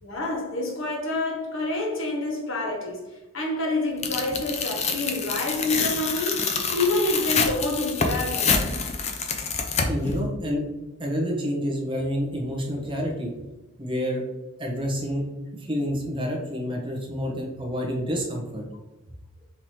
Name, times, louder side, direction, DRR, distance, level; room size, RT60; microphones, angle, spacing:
voice 1, 0.0-3.1 3.3-8.7, left 2 dB, 60° left, 1.2 m, -28 dB
Tearing, 4.0-10.2, left 5 dB, 30° left, 0.5 m, -26 dB
voice 2, 9.8-10.6 11.0-13.3 13.8-14.2 14.6-15.2 15.5-18.6, equal, 25° right, 1.0 m, -28 dB
5.7 x 3.0 x 3.2 m
head